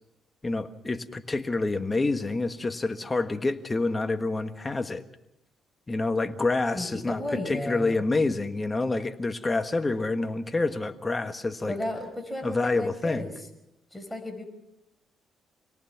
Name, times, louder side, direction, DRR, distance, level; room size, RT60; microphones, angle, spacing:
voice 1, 0.4-5.0 5.9-11.7 12.4-13.3, left 3 dB, 25° left, 8 dB, 1.5 m, -27 dB
voice 2, 6.7-8.0 11.7-13.3 13.9-14.4, left 1 dB, 5° left, 4 dB, 4.9 m, -34 dB
26.0 x 18.5 x 5.9 m, 0.88 s
cardioid pair, 90°, 0 cm